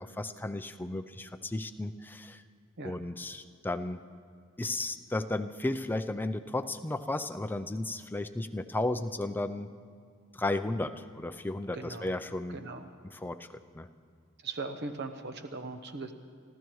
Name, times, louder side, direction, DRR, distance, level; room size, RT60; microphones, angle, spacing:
voice 1, 0.0-2.4 2.8-4.0 4.6-9.7 10.3-12.6 13.0-13.9, left 2 dB, 10° left, 9 dB, 0.4 m, -34 dB
voice 2, 11.7-12.1 12.5-12.9 14.4-16.1, right 3 dB, 55° right, 7 dB, 0.9 m, -39 dB
30.0 x 13.0 x 3.1 m, 2.2 s
head